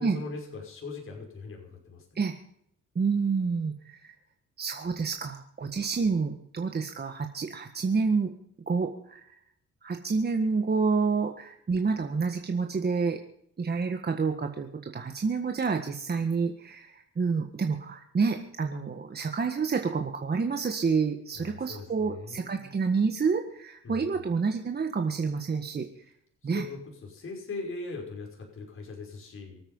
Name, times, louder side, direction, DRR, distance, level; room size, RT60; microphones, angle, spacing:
voice 1, 0.0-2.2 21.3-22.7 23.8-24.0 26.4-29.6, left 3 dB, 45° left, 0 dB, 5.6 m, -40 dB
voice 2, 3.0-4.1 4.6-8.3 8.7-9.4 9.8-13.2 13.6-25.9 26.4-26.6, right 5 dB, 30° right, 4 dB, 1.7 m, -28 dB
24.5 x 8.9 x 5.6 m, 0.71 s
cardioid pair, 90°, 30 cm